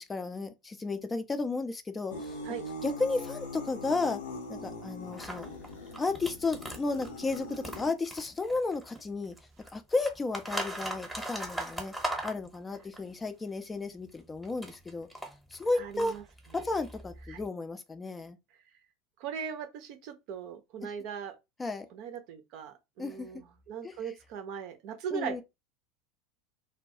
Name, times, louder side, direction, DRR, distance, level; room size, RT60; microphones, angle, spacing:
voice 1, 0.0-2.4 2.8-4.2 4.5-5.5 6.0-9.3 9.7-11.9 12.2-15.1 15.5-16.1 16.5-18.4 20.8-20.9 21.6-21.9 23.0-23.3 23.8-23.9 25.1-25.4, left 3 dB, 20° left, 0.4 m, -33 dB
sound 1, 2.1-7.9, left 2 dB, 65° left, 0.6 m, -41 dB
sound 2, 5.1-9.1 9.4-13.0 14.1-17.4, right 1 dB, 5° right, 0.9 m, -39 dB
voice 2, 15.7-16.2 17.3-17.4 19.2-21.3 21.9-25.4, right 7 dB, 50° right, 0.5 m, -39 dB
2.2 x 2.2 x 2.7 m
figure-of-eight pair, 80°, 0 cm